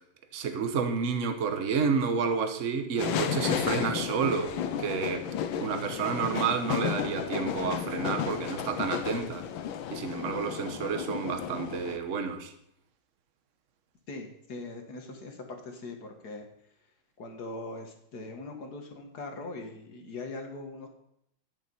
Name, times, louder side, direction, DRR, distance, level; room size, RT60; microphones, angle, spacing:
voice 1, 0.3-4.5 4.8-5.3 5.6-9.4 9.9-12.5, right 5 dB, 45° right, 7 dB, 1.2 m, -30 dB
sound 1, 3.0-12.0, left 8 dB, 70° left, 1.5 m, -33 dB
voice 2, 14.1-16.5 17.2-20.9, left 2 dB, 50° left, 4 dB, 2.0 m, -41 dB
11.5 x 7.6 x 5.5 m, 0.75 s
omnidirectional pair, 2.3 m